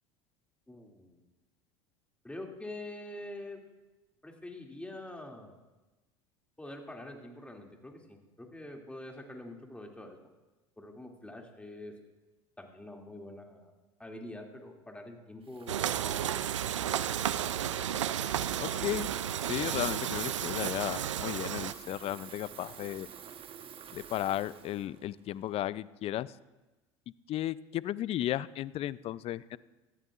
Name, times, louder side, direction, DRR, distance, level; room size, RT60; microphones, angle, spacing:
voice 1, 0.7-1.2 2.2-3.6 4.2-5.6 6.6-10.3 10.8-12.0 12.6-13.7 14.0-16.4, left 1 dB, 10° left, 1 dB, 2.5 m, -45 dB
Water tap faucet / Fill (with liquid), 15.4-25.7, right 7 dB, 35° right, 1.1 m, -49 dB
sound 1, 15.7-21.7, right 10 dB, 85° right, 0.4 m, -32 dB
voice 2, 18.6-19.1 19.5-23.1 23.9-26.3 27.3-29.6, left 13 dB, 40° left, 19 dB, 0.4 m, -34 dB
18.0 x 14.0 x 2.5 m, 1.1 s
hypercardioid pair, 75°, 15 cm